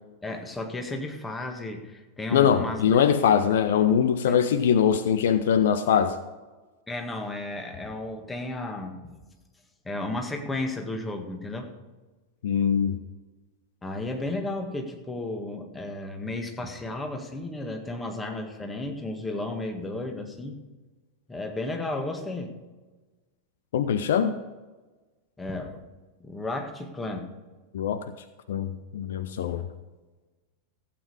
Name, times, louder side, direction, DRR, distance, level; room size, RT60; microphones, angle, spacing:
voice 1, 0.2-3.0 4.3-4.4 6.9-9.2 9.9-11.7 13.8-20.6 21.3-22.5 25.4-25.9 26.2-27.3, left 2 dB, 10° left, 4 dB, 1.8 m, -33 dB
voice 2, 2.3-6.2 12.4-13.0 23.7-24.3 27.7-28.0 28.5-29.7, left 8 dB, 60° left, 11 dB, 0.6 m, -22 dB
15.5 x 8.6 x 4.8 m, 1.2 s
figure-of-eight pair, 90°, 0 cm